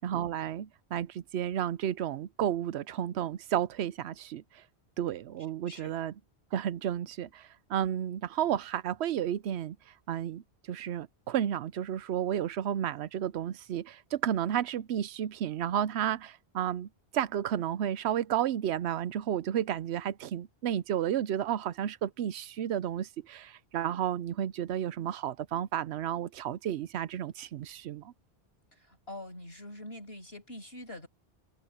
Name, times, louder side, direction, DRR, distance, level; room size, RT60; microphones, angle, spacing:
voice 1, 0.0-4.6 5.0-6.1 6.5-9.8 10.1-28.1, right 10 dB, 90° right, 0.9 m, -32 dB
voice 2, 28.7-31.1, left 1 dB, 75° left, 6.7 m, -44 dB
omnidirectional pair, 1.1 m